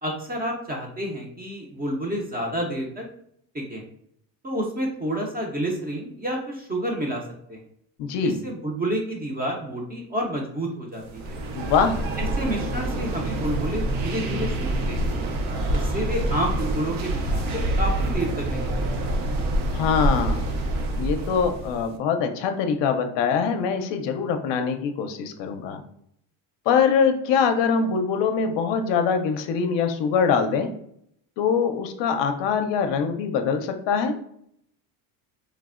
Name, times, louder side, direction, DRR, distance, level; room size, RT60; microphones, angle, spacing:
voice 1, 0.0-3.0 3.5-3.8 4.4-7.2 7.5-7.6 8.2-11.4 12.2-15.1 15.7-19.2, right 1 dB, 20° right, 0 dB, 0.4 m, -29 dB
voice 2, 8.0-8.4 11.5-12.0 19.7-20.5 21.0-25.8 26.7-30.7 31.4-34.1, left 6 dB, 60° left, 6 dB, 0.5 m, -23 dB
sound 1, 11.0-21.9, right 1 dB, 80° right, 0.6 m, -26 dB
3.2 x 2.0 x 2.3 m, 0.72 s
cardioid pair, 115°, 49 cm